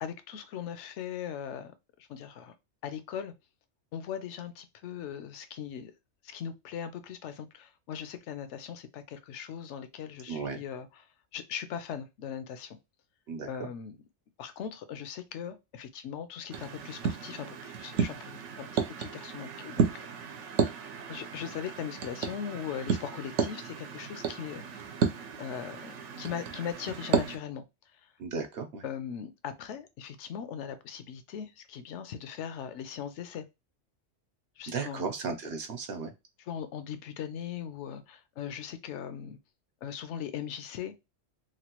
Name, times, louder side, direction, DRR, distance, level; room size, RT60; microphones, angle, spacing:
voice 1, 0.0-1.7 2.0-2.5 2.8-3.3 3.9-5.9 6.2-11.1 11.3-12.8 13.5-14.0 14.4-20.0 20.3-20.5 21.1-24.8 25.4-27.6 28.0-28.1 28.8-33.4 34.6-35.1 36.4-39.4 39.8-41.0, left 8 dB, 80° left, 0.9 m, -39 dB
voice 2, 10.3-10.6 13.3-13.5 28.2-28.8 34.7-36.1, right 4 dB, 60° right, 0.9 m, -35 dB
sound 1, 16.5-27.4, right 6 dB, 90° right, 0.9 m, -33 dB
3.1 x 2.3 x 2.9 m
omnidirectional pair, 1.2 m